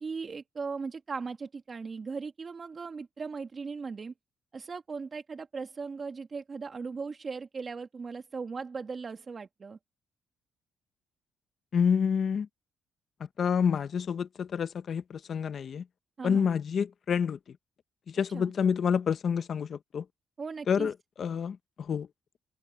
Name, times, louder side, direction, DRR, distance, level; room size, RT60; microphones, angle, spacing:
voice 1, 0.0-4.1 4.5-9.8 16.2-16.5 18.3-18.5 20.4-20.9, right 5 dB, 40° right, 1.7 m, -38 dB
voice 2, 11.7-12.5 13.4-15.8 16.2-17.6 18.1-20.0 20.7-22.1, left 7 dB, 55° left, 1.0 m, -28 dB
open air
cardioid pair, 90°, 0 cm